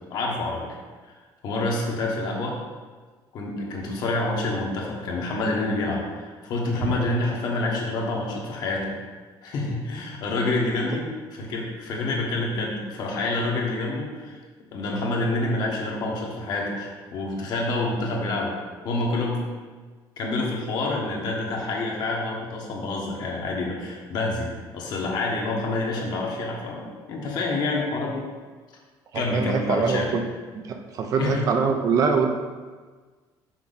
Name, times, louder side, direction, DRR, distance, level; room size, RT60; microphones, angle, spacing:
voice 1, 0.1-0.8 1.1-1.2 1.4-2.6 3.3-8.9 9.4-14.4 14.7-18.5 18.8-19.5 20.2-28.3 29.1-30.1 31.1-31.5, left 2 dB, 55° left, -1 dB, 1.4 m, -27 dB
voice 2, 29.1-30.2 30.6-32.4, right 5 dB, 40° right, 4 dB, 0.6 m, -23 dB
5.9 x 5.6 x 4.0 m, 1.4 s
cardioid pair, 170°, 9 cm